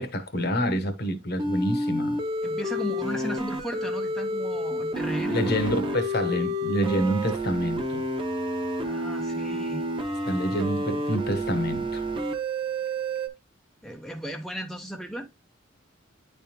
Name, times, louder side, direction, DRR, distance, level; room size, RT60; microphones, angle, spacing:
voice 1, 0.0-2.2 5.3-8.0 10.2-12.1, equal, 50° left, 1.0 m, -27 dB
sound 1, 1.4-13.3, equal, 25° right, 0.8 m, -29 dB
voice 2, 2.4-5.7 8.8-9.8 13.8-15.3, equal, ahead, 0.5 m, -35 dB
9.8 x 3.4 x 2.9 m
head